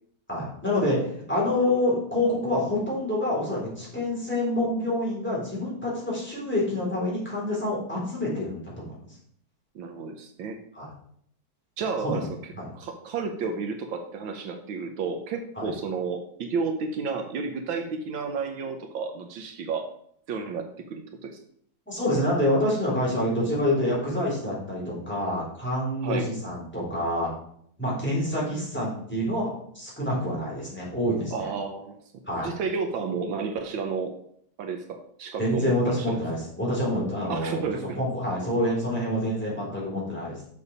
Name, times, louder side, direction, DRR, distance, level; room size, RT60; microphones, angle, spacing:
voice 1, 0.3-8.9 10.7-10.9 12.0-12.3 12.6-12.7 15.6-15.7 21.9-27.3 27.8-31.5 32.3-32.5 35.4-37.6 38.0-40.5, left 1 dB, 5° left, -5 dB, 3.9 m, -27 dB
voice 2, 9.7-10.6 11.8-12.3 12.7-19.9 20.3-21.4 26.0-26.3 31.3-32.0 32.4-34.2 34.6-36.2 37.3-38.0, right 5 dB, 75° right, 5 dB, 1.6 m, -32 dB
6.9 x 6.6 x 5.5 m, 0.66 s
omnidirectional pair, 2.2 m